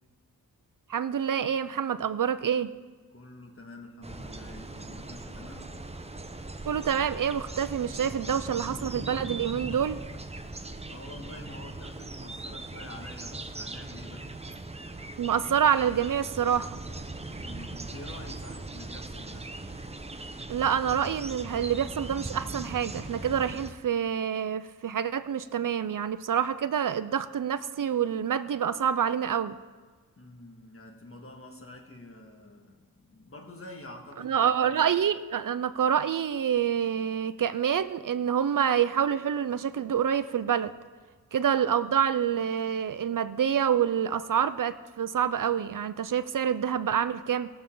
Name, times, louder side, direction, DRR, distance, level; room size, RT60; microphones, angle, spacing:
voice 1, 0.9-2.7 6.7-10.0 15.2-16.8 20.5-29.6 34.2-40.7 41.3-47.5, right 8 dB, 60° right, 13 dB, 0.5 m, -27 dB
voice 2, 3.1-5.8 10.9-14.3 17.3-19.5 30.2-34.7, left 2 dB, 35° left, 2 dB, 1.8 m, -47 dB
sound 1, 4.0-23.7, right 2 dB, 15° right, 0.8 m, -40 dB
19.5 x 6.9 x 3.8 m, 1.5 s
cardioid pair, 55°, 36 cm